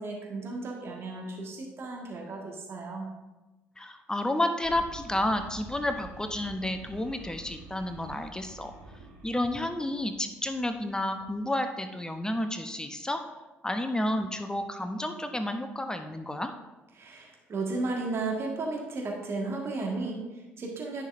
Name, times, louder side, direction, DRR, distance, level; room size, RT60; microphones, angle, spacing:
voice 1, 0.0-3.1 16.9-21.1, right 3 dB, 45° right, 0 dB, 1.7 m, -34 dB
voice 2, 3.8-8.7 9.2-13.2 13.6-16.5, left 1 dB, 10° left, 7 dB, 0.8 m, -31 dB
sound 1, 4.6-10.9, right 4 dB, 85° right, 1.1 m, -48 dB
10.0 x 5.7 x 2.6 m, 1.1 s
hypercardioid pair, 50°, 6 cm